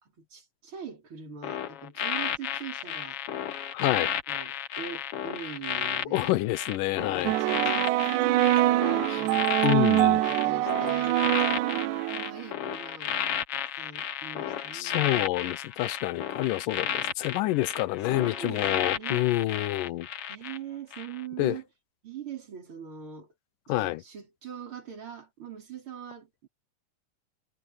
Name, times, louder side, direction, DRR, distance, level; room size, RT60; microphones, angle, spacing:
voice 1, 0.0-3.2 4.0-6.4 6.9-9.5 10.0-13.2 13.5-15.2 18.1-19.3 20.3-21.7 22.0-23.3 23.7-26.5, right 8 dB, 40° right, 4.9 m, -42 dB
sound 1, 1.4-20.6 20.9-21.2, left 9 dB, 55° left, 1.8 m, -33 dB
voice 2, 3.7-4.1 6.1-7.3 9.1-9.2 9.6-10.2 14.7-20.1 21.4-21.6 23.7-24.0, left 17 dB, 90° left, 2.4 m, -28 dB
sound 2, 7.2-12.5, right 15 dB, 80° right, 2.0 m, -24 dB
omnidirectional pair, 3.7 m